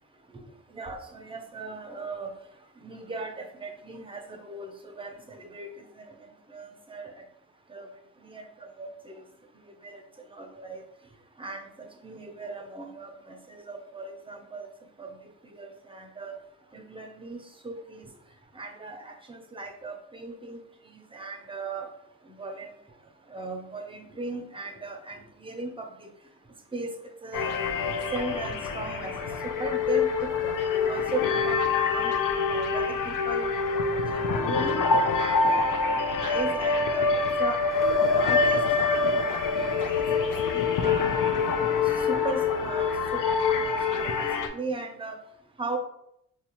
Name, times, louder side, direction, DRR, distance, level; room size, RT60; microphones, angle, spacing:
voice 1, 0.7-2.3 2.8-7.2 7.7-7.9 8.2-9.2 9.8-10.0 10.3-10.8 11.4-14.7 15.0-16.4 16.7-18.1 18.5-20.6 20.9-21.9 22.2-22.7 23.3-26.1 26.7-27.5 28.1-30.5 30.8-32.1 32.5-33.6 34.1-34.8 35.2-37.6 38.1-38.6 39.0-40.0 40.5-41.1 41.8-43.3 43.6-45.2 45.6-45.8, right 3 dB, 15° right, 3 dB, 0.5 m, -38 dB
sound 1, 27.3-44.5, left 4 dB, 70° left, 0.5 m, -25 dB
4.2 x 2.4 x 2.9 m, 0.72 s
wide cardioid pair, 110°, 33 cm